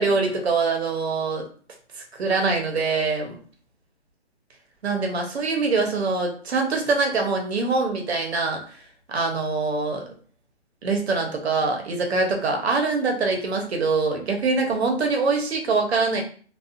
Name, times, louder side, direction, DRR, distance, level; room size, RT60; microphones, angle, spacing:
voice 1, 0.0-1.4 1.9-3.3 4.8-8.8 9.1-10.0 10.8-16.2, right 4 dB, 65° right, 2 dB, 0.9 m, -24 dB
2.5 x 2.4 x 2.5 m, 0.43 s
hypercardioid pair, 170°, 35 cm